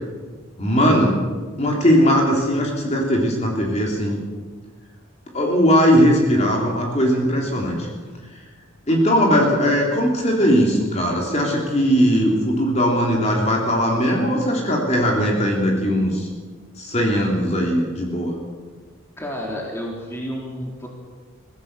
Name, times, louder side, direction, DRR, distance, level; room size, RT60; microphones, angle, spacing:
voice 1, 0.6-1.2 1.6-4.2 5.3-7.9 8.9-16.3 16.8-18.4, equal, 30° left, -1 dB, 3.5 m, -19 dB
voice 2, 19.2-20.9, equal, 10° left, -1 dB, 3.6 m, -30 dB
23.5 x 16.0 x 6.8 m, 1.4 s
head